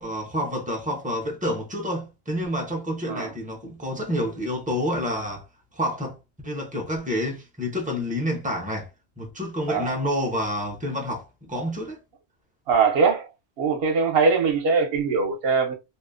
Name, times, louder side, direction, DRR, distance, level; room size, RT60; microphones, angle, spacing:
voice 1, 0.0-5.5 5.7-6.2 6.4-8.9 9.2-12.0, equal, 10° right, 0.5 m, -28 dB
voice 2, 12.7-13.3 13.6-15.7, right 5 dB, 65° right, 0.8 m, -21 dB
2.6 x 2.0 x 2.4 m
omnidirectional pair, 1.2 m